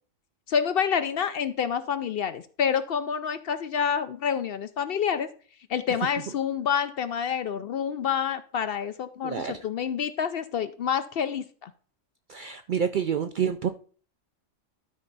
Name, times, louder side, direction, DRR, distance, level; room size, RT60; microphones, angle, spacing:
voice 1, 0.5-5.3 5.7-11.7, left 7 dB, 60° left, 12 dB, 0.6 m, -28 dB
voice 2, 9.2-9.6 12.3-13.7, right 7 dB, 65° right, 8 dB, 0.5 m, -28 dB
12.5 x 4.5 x 3.9 m, 0.42 s
omnidirectional pair, 1.3 m